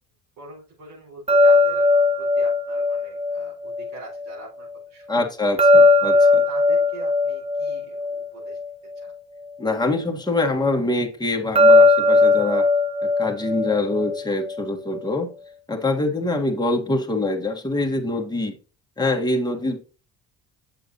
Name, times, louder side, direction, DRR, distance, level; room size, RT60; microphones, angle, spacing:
voice 1, 0.4-1.9 2.2-5.5 6.1-8.6 8.9-9.2, right 2 dB, 75° right, -7 dB, 4.3 m, -43 dB
sound 1, 1.3-4.4 5.6-9.1 11.6-14.6, left 2 dB, 15° right, 0.7 m, -18 dB
voice 2, 5.1-6.4 9.6-12.7 13.0-15.3 15.7-18.6 19.0-19.8, left 2 dB, 10° left, 2 dB, 1.8 m, -24 dB
7.6 x 6.8 x 2.7 m, 0.36 s
supercardioid pair, 75°, 39 cm